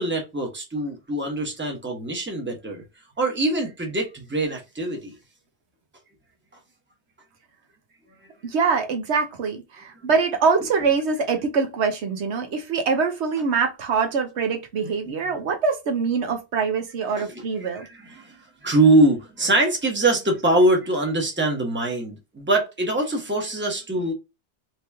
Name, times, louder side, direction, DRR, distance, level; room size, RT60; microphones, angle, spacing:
voice 1, 0.0-2.8 3.2-5.1 17.2-17.4 17.8-17.9 18.2-18.3 18.6-24.1, right 2 dB, 10° right, 1.0 m, -23 dB
voice 2, 8.4-17.9, right 5 dB, 85° right, 1.1 m, -24 dB
3.0 x 3.0 x 3.4 m
omnidirectional pair, 1.1 m